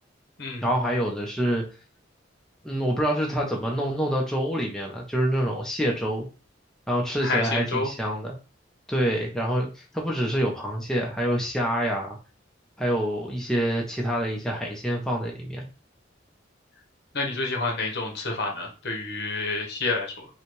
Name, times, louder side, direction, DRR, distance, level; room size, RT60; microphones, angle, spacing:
voice 1, 0.6-1.6 2.6-6.3 6.9-8.4 8.9-12.2 12.8-15.7, equal, 5° left, -2 dB, 0.8 m, -26 dB
voice 2, 7.2-7.9 17.1-20.3, left 3 dB, 60° left, 0 dB, 1.3 m, -28 dB
5.6 x 2.4 x 3.2 m, 0.33 s
head